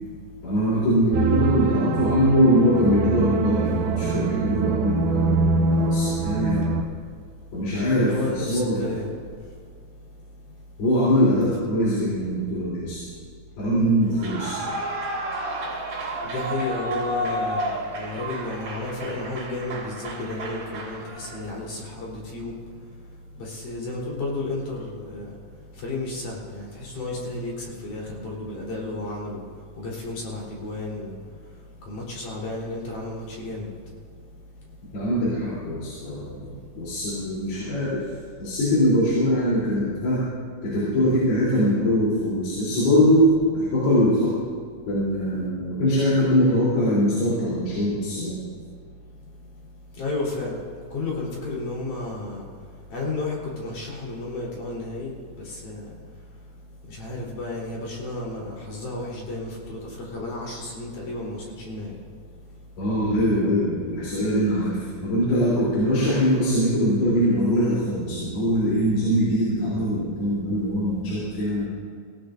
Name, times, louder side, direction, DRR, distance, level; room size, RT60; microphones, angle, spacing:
voice 1, 0.4-6.6 7.5-8.9 10.8-13.0 13.6-14.7 34.9-38.0 38.4-40.2 40.6-43.3 43.5-44.3 44.9-48.4 62.8-71.7, equal, 85° left, -8 dB, 5.4 m, -22 dB
sound 1, 1.1-6.8, right 5 dB, 75° right, 2.0 m, -24 dB
voice 2, 8.1-9.1 11.4-11.6 16.2-17.7 18.0-22.6 23.4-25.3 25.8-29.4 29.8-31.2 31.9-33.7 50.0-50.6 50.9-52.5 52.9-55.9 56.9-62.0, left 2 dB, 55° left, -4 dB, 5.2 m, -32 dB
Clapping / Cheering / Applause, 14.1-21.5, right 1 dB, 50° right, 5.0 m, -31 dB
26.0 x 16.0 x 2.6 m, 2.2 s
omnidirectional pair, 4.3 m